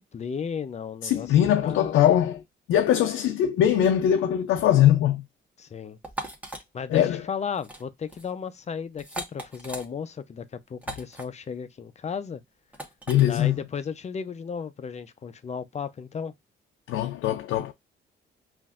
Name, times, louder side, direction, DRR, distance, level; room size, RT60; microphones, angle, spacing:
voice 1, 0.0-2.0 5.6-6.0 6.7-12.4 13.3-16.3, left 6 dB, 35° left, 0.5 m, -34 dB
voice 2, 1.0-2.4 2.7-5.2 6.9-7.2 13.1-13.6 16.9-17.7, left 11 dB, 85° left, 0.5 m, -21 dB
sound 1, 6.0-6.6 7.5-7.8 8.1-8.3 9.0-9.9 10.8-11.2 12.7-13.2, right 1 dB, 5° right, 1.2 m, -37 dB
5.4 x 2.6 x 2.4 m
cardioid pair, 90°, 20 cm